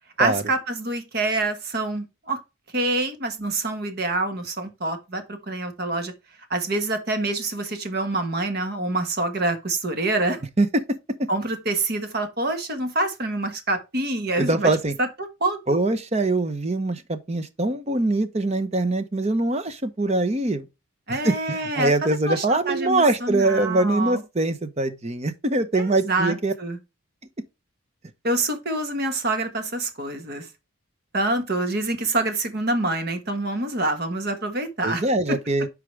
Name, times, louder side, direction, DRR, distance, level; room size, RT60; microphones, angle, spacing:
voice 1, 0.2-2.4 2.7-6.1 6.5-10.4 11.3-14.7 15.0-15.1 15.4-15.8 21.1-24.2 25.7-26.8 28.2-30.5 31.1-35.4, right 2 dB, 45° right, 1.4 m, -26 dB
voice 2, 10.6-11.3 14.4-14.9 15.7-20.6 21.1-26.5 34.8-35.7, right 2 dB, 30° right, 0.7 m, -23 dB
8.4 x 4.9 x 3.3 m
head